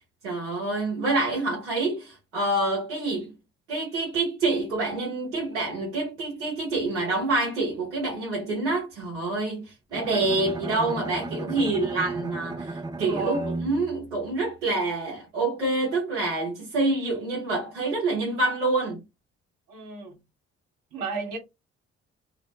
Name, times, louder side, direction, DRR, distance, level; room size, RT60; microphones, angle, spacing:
voice 1, 0.2-3.3 3.7-19.0, right 2 dB, 85° right, 0.8 m, -27 dB
Bowed string instrument, 9.9-15.0, right 2 dB, 10° right, 0.4 m, -35 dB
voice 2, 13.0-13.6 19.7-20.2 20.9-21.4, right 2 dB, 70° right, 1.1 m, -32 dB
2.4 x 2.0 x 2.8 m
hypercardioid pair, 40°, 35 cm